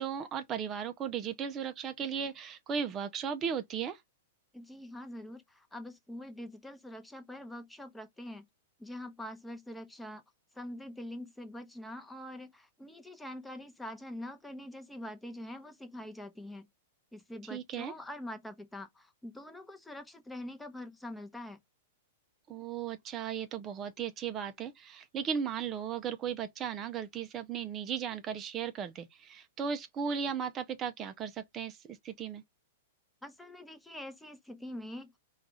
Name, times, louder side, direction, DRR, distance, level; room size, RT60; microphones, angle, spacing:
voice 1, 0.0-4.0 17.4-17.9 22.5-32.4, right 7 dB, 30° right, 0.5 m, -36 dB
voice 2, 4.5-8.5 8.8-10.2 10.5-16.7 17.1-21.6 33.2-35.1, left 1 dB, 5° left, 0.8 m, -44 dB
4.6 x 2.4 x 3.9 m
hypercardioid pair, 110°, 0 cm